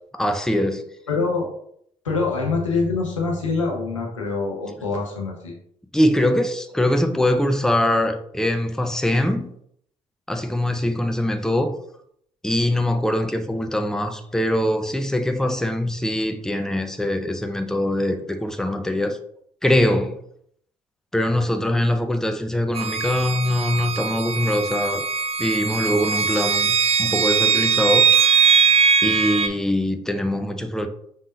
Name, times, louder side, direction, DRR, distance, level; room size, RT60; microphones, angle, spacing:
voice 1, 0.2-0.8 5.9-9.5 10.3-11.8 12.4-19.2 19.6-20.2 21.1-25.0 25.4-28.4 29.0-30.9, left 1 dB, 5° left, 0.7 m, -22 dB
voice 2, 1.1-1.5 2.0-5.5, left 4 dB, 90° left, 0.9 m, -24 dB
sound 1, 22.8-29.5, right 6 dB, 40° right, 0.6 m, -20 dB
5.5 x 3.6 x 2.6 m
figure-of-eight pair, 45°, 16 cm